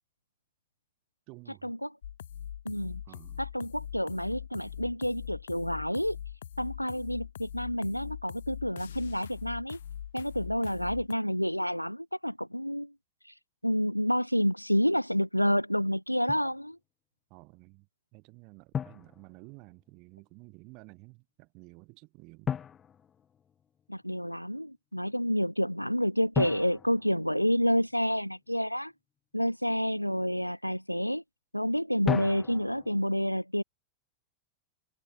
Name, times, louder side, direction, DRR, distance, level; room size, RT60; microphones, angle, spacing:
voice 1, 1.3-1.7 3.0-3.4 17.3-22.6, right 27 dB, 45° right, 7.7 m, -52 dB
sound 1, 2.0-11.1, left 10 dB, 65° left, 2.2 m, -42 dB
voice 2, 2.7-3.0 3.4-6.2 6.6-9.8 10.1-12.9 13.2-13.3 13.6-16.8 23.9-28.9 29.3-31.2 31.5-33.6, equal, 90° left, 0.3 m, -29 dB
Drum, 16.3-16.6 18.7-19.9 22.5-23.9 26.3-28.1 32.1-33.0, left 8 dB, 25° left, 1.3 m, -36 dB
figure-of-eight pair, 90°, 0 cm